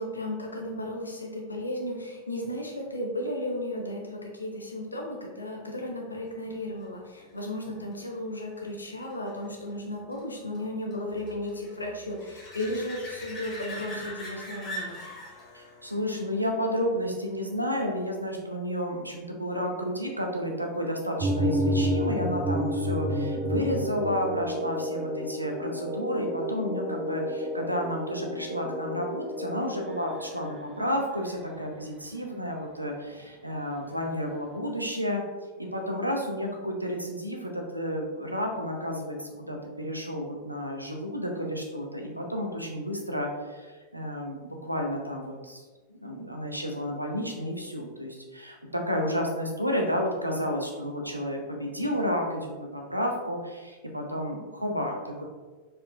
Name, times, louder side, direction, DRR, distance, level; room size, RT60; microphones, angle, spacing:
voice 1, 0.0-15.0, left 1 dB, 80° left, 0 dB, 0.7 m, -34 dB
sound 1, 6.5-17.8 23.5-23.6, equal, 30° left, 1.2 m, -44 dB
voice 2, 15.5-35.2 35.6-45.6 46.0-55.2, equal, 85° right, 1 dB, 0.6 m, -31 dB
sound 2, 21.2-30.6, equal, 20° right, 0.9 m, -30 dB
4.3 x 3.8 x 2.3 m, 1.3 s
figure-of-eight pair, 90°, 0 cm